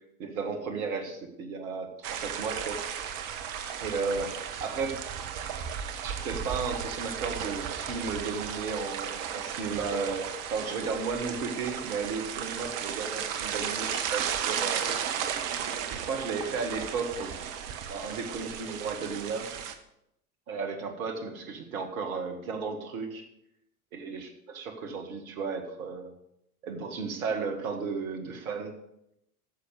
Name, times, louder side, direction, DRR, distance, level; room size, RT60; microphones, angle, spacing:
voice 1, 0.2-2.8 3.8-4.3 4.6-5.0 6.0-14.9 15.9-17.3 17.9-19.5 20.5-23.3 23.9-24.3 24.5-26.1 26.6-28.8, right 4 dB, 65° right, 4 dB, 2.0 m, -34 dB
sound 1, 2.0-19.7, right 8 dB, 45° right, 1.2 m, -35 dB
10.5 x 6.9 x 6.6 m, 0.80 s
figure-of-eight pair, 75°, 45 cm